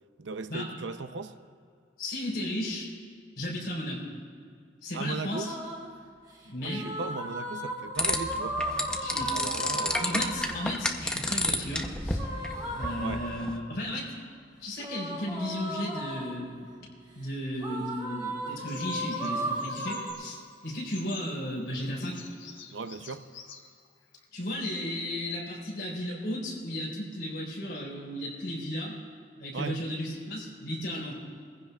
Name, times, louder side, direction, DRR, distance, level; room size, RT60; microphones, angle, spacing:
voice 1, 0.2-1.4 4.9-5.6 6.6-8.6 9.1-10.3 13.0-13.2 22.7-23.3 29.5-29.9, right 4 dB, 80° right, 0.6 m, -37 dB
voice 2, 2.0-2.9 3.4-4.1 4.8-5.5 6.4-6.8 9.0-9.4 9.7-12.3 12.7-14.1 14.6-16.6 17.1-22.2 24.3-29.0 29.4-31.1, left 1 dB, 55° left, 4.0 m, -34 dB
sound 1, 5.3-5.9 6.6-10.8 12.1-13.7 14.8-16.5 17.6-20.1, right 1 dB, 20° right, 1.7 m, -35 dB
sound 2, 8.0-13.6, left 1 dB, 5° left, 0.6 m, -31 dB
Bird vocalization bird call bird song, 18.7-24.3, left 7 dB, 90° left, 1.2 m, -50 dB
22.0 x 15.5 x 2.3 m
head